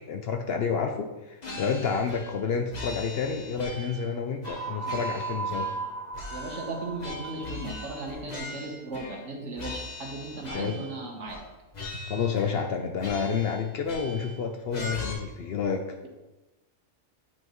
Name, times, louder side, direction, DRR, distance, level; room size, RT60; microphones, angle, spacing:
voice 1, 0.1-5.7 10.5-10.8 12.0-16.0, left 6 dB, 60° left, 4 dB, 0.7 m, -29 dB
sound 1, 1.4-2.4 2.7-4.1 4.4-5.9 6.1-9.3 9.6-10.9 11.3-11.5 11.7-12.7 13.0-14.4 14.7-15.1, left 2 dB, 35° left, 1.1 m, -40 dB
sound 2, 4.4-8.1, right 4 dB, 80° right, 2.0 m, -36 dB
voice 2, 6.3-11.4, right 2 dB, 65° right, 2 dB, 1.4 m, -36 dB
8.7 x 5.6 x 3.0 m, 1.1 s
omnidirectional pair, 1.4 m